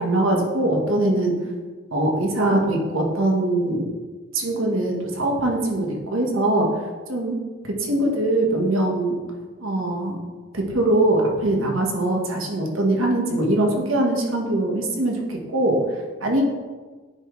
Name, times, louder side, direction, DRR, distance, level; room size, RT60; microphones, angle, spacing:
voice 1, 0.0-1.3 1.9-3.9 4.3-6.7 7.1-7.4 7.6-9.2 9.6-10.2 10.5-15.8 16.2-16.4, right 1 dB, 85° right, 1 dB, 1.2 m, -22 dB
9.6 x 3.6 x 3.1 m, 1.4 s
head